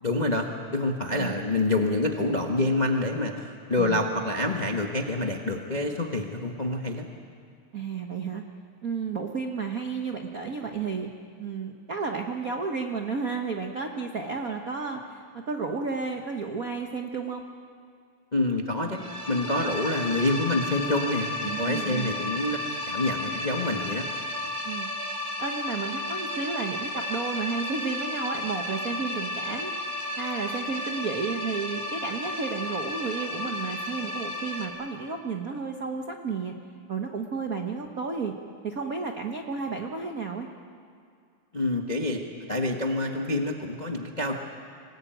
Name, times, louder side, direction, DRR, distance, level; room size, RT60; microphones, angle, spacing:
voice 1, 0.0-7.1 18.3-22.6 22.9-24.1 41.5-42.2 42.5-44.4, left 2 dB, 85° left, 2 dB, 0.4 m, -27 dB
voice 2, 7.7-8.4 8.8-11.1 11.4-17.4 21.4-22.1 24.6-24.9 25.4-29.7 30.2-36.5 36.9-38.3 38.6-40.5, right 5 dB, 75° right, 3 dB, 0.7 m, -32 dB
sound 1, 18.9-34.7, left 1 dB, 15° left, 2.2 m, -33 dB
25.5 x 19.0 x 9.2 m, 2.3 s
omnidirectional pair, 3.6 m